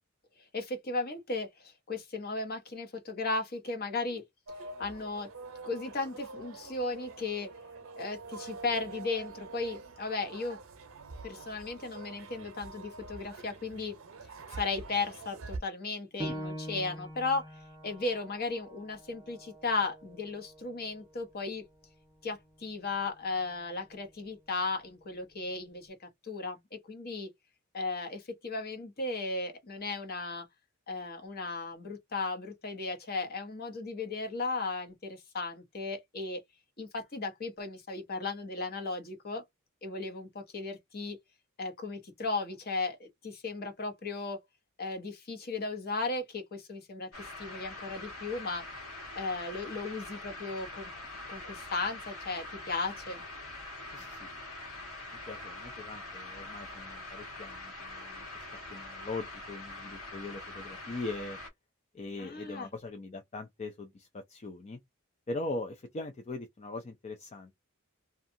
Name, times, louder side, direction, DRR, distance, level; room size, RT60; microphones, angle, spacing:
voice 1, 0.5-4.2 4.8-5.3 5.6-7.5 8.0-10.6 11.2-13.9 14.5-21.6 22.2-26.0 26.2-27.3 27.7-30.5 30.9-36.4 36.8-39.4 39.8-41.2 41.6-44.4 44.8-48.6 49.1-50.9 51.3-53.2 62.2-62.7, left 3 dB, 45° left, 0.9 m, -36 dB
sound 1, 4.5-15.6, right 3 dB, 70° right, 0.7 m, -46 dB
Piano, 16.2-21.4 21.8-21.9 22.5-23.0, equal, 15° right, 0.7 m, -44 dB
sound 2, 47.1-61.5, left 2 dB, 85° left, 1.5 m, -44 dB
voice 2, 53.9-54.3 55.3-61.4 61.9-64.8 65.3-67.5, left 2 dB, 30° left, 0.4 m, -41 dB
2.7 x 2.3 x 2.5 m
head